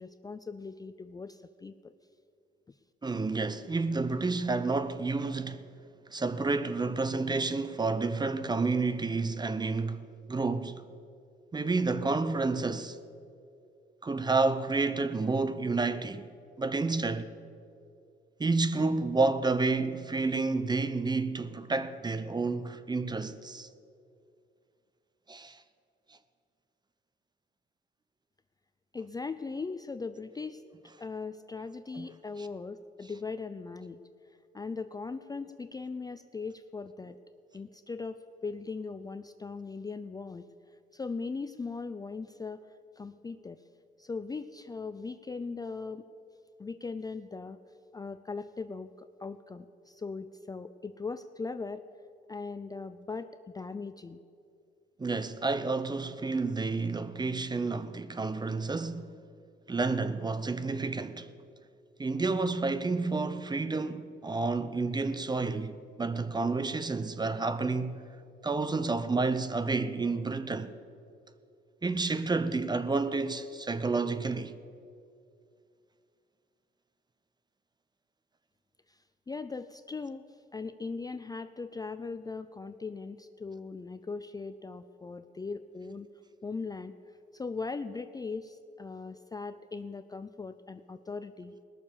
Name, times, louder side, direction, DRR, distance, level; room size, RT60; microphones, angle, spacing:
voice 1, 0.0-1.9 28.9-30.6 31.0-34.0 34.5-37.2 37.5-40.5 40.9-42.6 43.0-43.6 44.0-46.0 46.6-47.6 47.9-51.8 52.3-54.2 78.9-79.0 79.3-80.2 80.5-86.1 86.4-86.9 87.3-91.6, left 4 dB, 20° left, 0.4 m, -39 dB
voice 2, 3.0-5.7 6.1-10.8 11.5-13.0 14.0-16.3 16.6-17.3 18.4-23.7 25.3-25.6 32.0-32.1 55.0-59.2 59.7-61.3 62.0-68.1 68.4-70.7 71.8-74.5, right 3 dB, 20° right, 0.7 m, -30 dB
19.0 x 6.8 x 7.1 m
cardioid pair, 90°, 20 cm